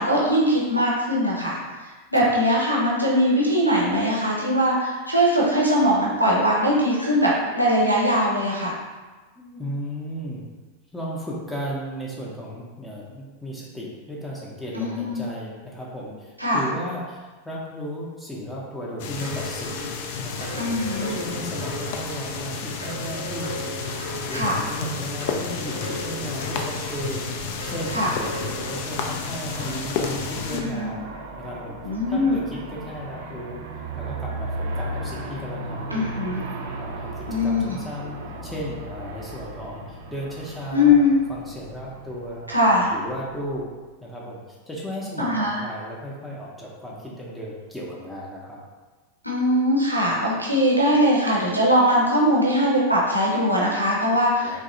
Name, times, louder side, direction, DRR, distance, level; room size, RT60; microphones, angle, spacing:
voice 1, 0.0-1.6 2.1-7.3 7.5-8.7 14.7-15.2 16.4-16.6 20.6-21.1 24.3-24.6 27.9-28.1 30.5-30.9 31.8-32.4 35.9-36.4 37.3-37.8 40.7-41.1 42.5-42.9 45.2-45.6 49.2-54.6, equal, 90° right, -5 dB, 0.7 m, -21 dB
voice 2, 9.4-10.4 10.9-19.9 20.2-20.7 21.0-27.3 27.6-28.0 28.2-31.1 31.4-31.8 32.1-33.6 33.9-36.1 36.8-41.0 41.3-42.5 42.9-43.7 44.0-48.6 54.4-54.6, equal, 5° left, -5 dB, 0.6 m, -35 dB
sound 1, 19.0-30.6, left 5 dB, 50° left, 0.3 m, -31 dB
sound 2, 19.2-28.8, equal, 90° left, 1.2 m, -37 dB
Aircraft, 26.8-43.8, right 2 dB, 55° right, 0.4 m, -37 dB
3.3 x 2.7 x 2.6 m, 1.3 s
figure-of-eight pair, 90°, 0 cm